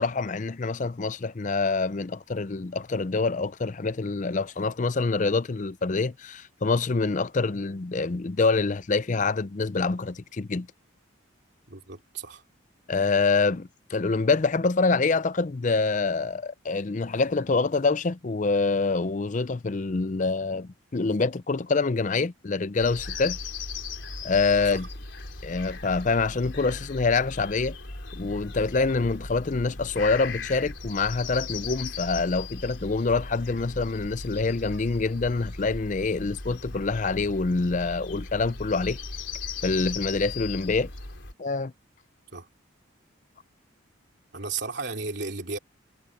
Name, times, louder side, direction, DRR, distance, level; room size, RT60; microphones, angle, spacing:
voice 1, 0.0-10.7 12.9-23.4 24.2-24.9 25.4-27.8 28.1-39.0 39.6-40.9 41.4-41.7, left 4 dB, 40° left, 0.5 m, -26 dB
voice 2, 11.7-12.4 24.7-24.8 42.3-42.5 44.3-45.6, right 4 dB, 60° right, 3.1 m, -34 dB
sound 1, 22.8-41.3, left 4 dB, 65° left, 3.9 m, -38 dB
head